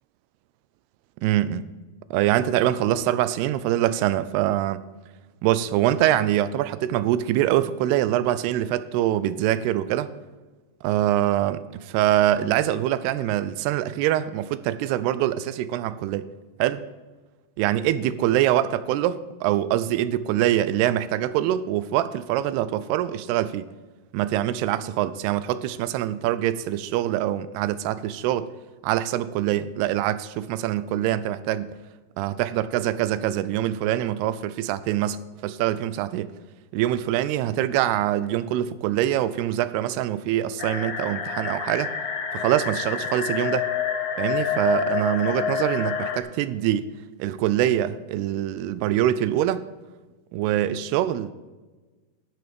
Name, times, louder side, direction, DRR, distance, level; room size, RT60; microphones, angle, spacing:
voice 1, 1.2-1.7 2.1-4.8 5.4-10.1 10.8-16.3 16.6-16.8 17.6-23.7 24.1-28.5 28.8-31.7 32.2-35.2 35.4-36.3 36.7-41.9 42.3-43.7 44.2-46.9 47.2-49.7 50.3-51.3, right 12 dB, 85° right, 15 dB, 2.6 m, -24 dB
sound 1, 40.6-46.2, left 7 dB, 85° left, 1.4 m, -28 dB
11.5 x 9.5 x 5.2 m, 1.2 s
omnidirectional pair, 4.6 m